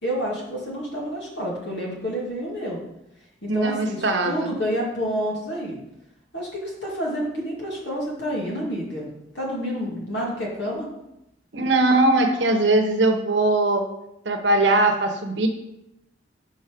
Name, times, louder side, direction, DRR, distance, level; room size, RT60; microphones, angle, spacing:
voice 1, 0.0-2.8 3.4-5.8 6.3-9.1 9.3-10.9, equal, 65° left, -3 dB, 2.3 m, -29 dB
voice 2, 3.5-4.5 11.5-13.8 14.2-15.5, right 2 dB, 70° right, 4 dB, 1.0 m, -20 dB
5.8 x 5.5 x 5.2 m, 0.87 s
head